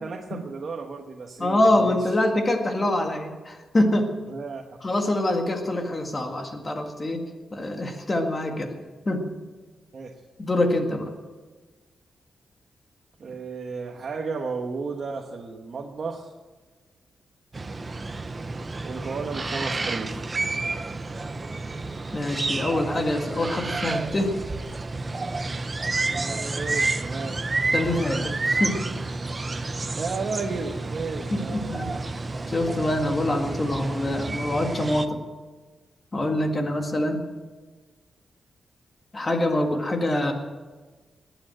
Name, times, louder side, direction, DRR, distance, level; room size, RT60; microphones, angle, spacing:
voice 1, 0.0-2.0 4.3-4.6 9.9-10.1 13.2-16.3 18.8-20.2 25.8-27.4 29.6-32.0, right 4 dB, 45° right, 1 dB, 1.2 m, -34 dB
voice 2, 1.4-4.1 4.8-7.2 7.5-8.8 9.1-9.2 10.4-11.1 22.1-24.3 27.7-28.8 31.3-31.9 32.5-35.2 36.1-37.2 39.1-40.3, left 1 dB, 25° left, 4 dB, 1.9 m, -25 dB
sound 1, 17.5-35.1, right 3 dB, 25° right, 0.7 m, -30 dB
20.5 x 9.0 x 7.7 m, 1.3 s
wide cardioid pair, 160°, 0 cm